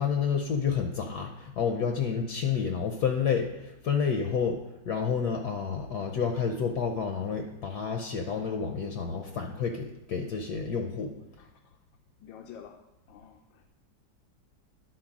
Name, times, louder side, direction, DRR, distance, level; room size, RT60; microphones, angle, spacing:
voice 1, 0.0-11.1, left 6 dB, 65° left, 4 dB, 1.1 m, -29 dB
voice 2, 12.2-12.8 13.1-13.7, left 8 dB, 85° left, 3 dB, 1.4 m, -48 dB
10.0 x 4.5 x 6.0 m, 0.92 s
omnidirectional pair, 2.1 m